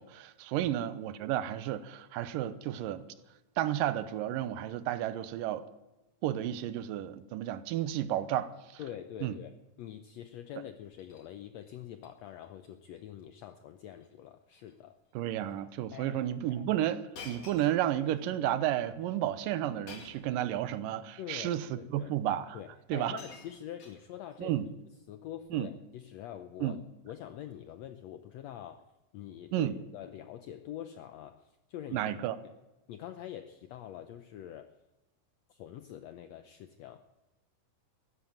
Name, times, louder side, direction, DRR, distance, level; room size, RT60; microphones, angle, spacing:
voice 1, 0.0-3.1 3.6-5.6 6.2-8.8 9.2-9.3 15.1-22.6 22.9-23.2 24.4-24.7 25.5-25.7 26.6-26.8 29.5-29.7 31.9-32.4, right 12 dB, 85° right, 2.5 m, -32 dB
voice 2, 8.8-9.5 9.8-14.9 15.9-16.2 16.5-16.6 21.2-22.1 22.5-24.6 25.1-26.8 27.0-28.8 29.1-32.2 32.9-34.7 35.5-37.0, left 11 dB, 80° left, 1.5 m, -45 dB
Shatter, 10.8-11.3 11.6-12.1 12.4-12.7 13.0-13.1 13.9-14.2 14.5-14.8 15.5-15.6 17.1-18.3 19.9-20.4 21.4-21.5 22.5-22.6 22.9-24.4 25.3-25.6, left 4 dB, 50° left, 3.2 m, -51 dB
15.0 x 11.0 x 8.8 m
omnidirectional pair, 3.9 m